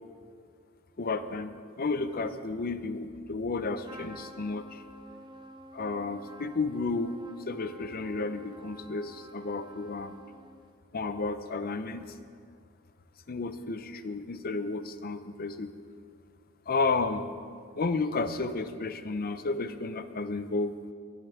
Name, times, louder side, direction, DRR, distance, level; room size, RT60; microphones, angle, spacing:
voice 1, 1.0-4.8 5.7-7.2 7.5-10.2 10.9-12.1 13.3-15.7 16.7-17.3 17.8-20.7, left 3 dB, 45° left, 11 dB, 0.7 m, -32 dB
Trumpet, 3.8-10.8, right 1 dB, 20° right, 0.8 m, -50 dB
23.0 x 10.5 x 3.7 m, 2.2 s
head